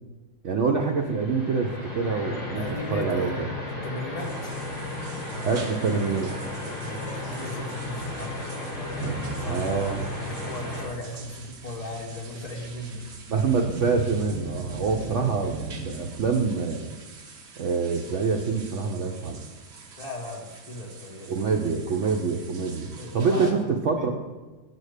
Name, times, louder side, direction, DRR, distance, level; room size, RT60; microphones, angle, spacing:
voice 1, 0.4-2.6 2.9-3.5 5.4-6.3 9.4-10.0 13.3-16.9 17.6-19.4 21.3-24.1, right 5 dB, 85° right, 2 dB, 0.6 m, -26 dB
sound 1, 0.9-10.9, left 2 dB, 45° left, 2.8 m, -34 dB
voice 2, 2.6-4.6 6.8-9.7 10.1-13.1 14.9-15.3 20.0-21.5 23.0-24.1, left 1 dB, 25° left, -2 dB, 1.0 m, -37 dB
sound 2, 4.2-23.5, right 4 dB, 50° right, 0.9 m, -46 dB
Motor vehicle (road) / Engine starting / Accelerating revving vroom, 6.1-6.2 6.4-6.6 7.3-7.4 8.6-16.4, right 4 dB, 10° right, 1.4 m, -38 dB
8.9 x 4.3 x 6.5 m, 1.3 s
omnidirectional pair, 2.0 m